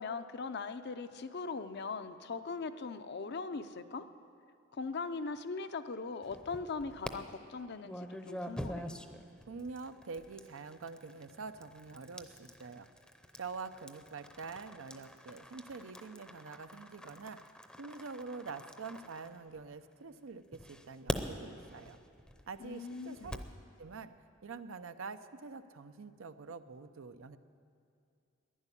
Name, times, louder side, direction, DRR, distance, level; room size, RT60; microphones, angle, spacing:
voice 1, 0.0-4.1 4.7-8.9 22.6-23.3, left 4 dB, 55° left, 10 dB, 0.6 m, -40 dB
sound 1, 6.2-7.1 7.8-19.9 20.5-23.6, equal, 5° left, 0.6 m, -45 dB
voice 2, 9.5-12.9 13.4-17.4 17.8-22.0 22.5-23.4 23.8-24.1 24.4-27.4, right 4 dB, 85° right, 11 dB, 0.6 m, -46 dB
11.0 x 10.5 x 9.9 m, 2.4 s
head